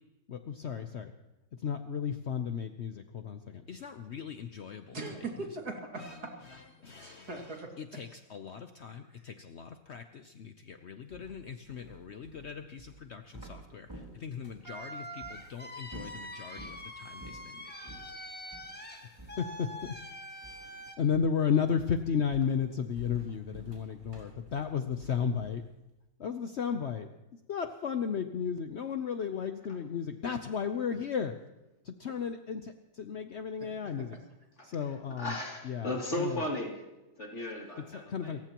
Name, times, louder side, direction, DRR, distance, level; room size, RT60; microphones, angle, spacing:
voice 1, 0.3-1.1 1.6-5.0 6.0-6.2 6.5-7.4 7.8-18.0 19.4-19.9 20.5-20.7 21.0-25.6 26.2-27.1 27.5-31.3 31.8-34.2 34.6-35.3 35.7-36.3 37.9-38.4, left 7 dB, 70° left, 7 dB, 0.6 m, -35 dB
voice 2, 4.9-6.6 7.0-8.0 33.6-33.9, right 3 dB, 50° right, 1 dB, 2.8 m, -41 dB
sound 1, 11.1-14.7 15.2-15.4 15.8-16.8 17.2-17.5 17.9-18.1 18.5-18.7 19.2-20.1 20.4-20.8 21.1-21.4 21.8-25.7, right 2 dB, 10° right, 3.8 m, -51 dB
sound 2, 14.6-21.0, equal, 5° left, 1.3 m, -44 dB
voice 3, 34.6-36.9 37.2-38.4, left 1 dB, 35° left, -1 dB, 3.1 m, -36 dB
29.5 x 15.0 x 3.0 m, 1.0 s
omnidirectional pair, 2.1 m